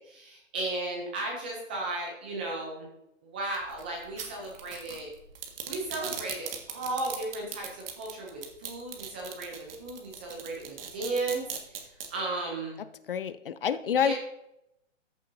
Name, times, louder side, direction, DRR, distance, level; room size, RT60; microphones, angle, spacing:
voice 1, 0.0-2.9 3.2-5.1 5.7-12.8 14.0-14.1, right 2 dB, 10° right, -2 dB, 0.4 m, -35 dB
sound 1, 3.5-12.1, right 8 dB, 50° right, 1.7 m, -39 dB
voice 2, 13.1-14.1, left 8 dB, 45° left, 14 dB, 0.5 m, -27 dB
14.0 x 7.0 x 2.7 m, 0.84 s
hypercardioid pair, 155°, 38 cm